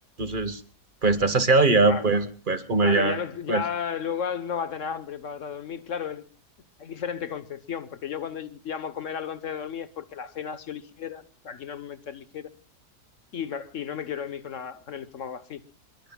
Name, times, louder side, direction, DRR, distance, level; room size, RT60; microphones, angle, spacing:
voice 1, 0.2-0.6 1.0-3.2 3.5-3.6, right 3 dB, 30° right, 1.5 m, -21 dB
voice 2, 2.8-6.3 6.8-12.5 13.3-15.6, left 7 dB, 55° left, 1.3 m, -34 dB
25.5 x 22.5 x 2.3 m
omnidirectional pair, 1.7 m